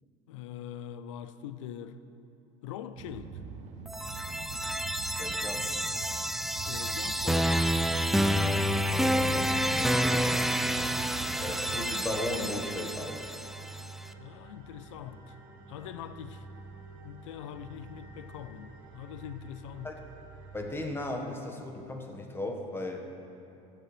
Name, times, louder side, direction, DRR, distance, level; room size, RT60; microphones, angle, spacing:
voice 1, 0.3-2.0 2.6-3.4 6.7-7.5 14.2-15.4 15.7-16.5 17.0-20.0, left 10 dB, 85° left, 0.5 m, -43 dB
sound 1, 3.0-11.8, right 6 dB, 50° right, 0.9 m, -43 dB
sound 2, 3.9-13.8, equal, ahead, 0.3 m, -29 dB
voice 2, 5.2-5.6 8.4-9.5 9.8-10.2 11.4-13.2 19.8-20.0 20.5-23.1, left 1 dB, 15° left, 1.4 m, -36 dB
sound 3, 10.5-20.8, right 4 dB, 70° right, 1.7 m, -49 dB
15.5 x 7.6 x 3.3 m
hypercardioid pair, 85°, 15 cm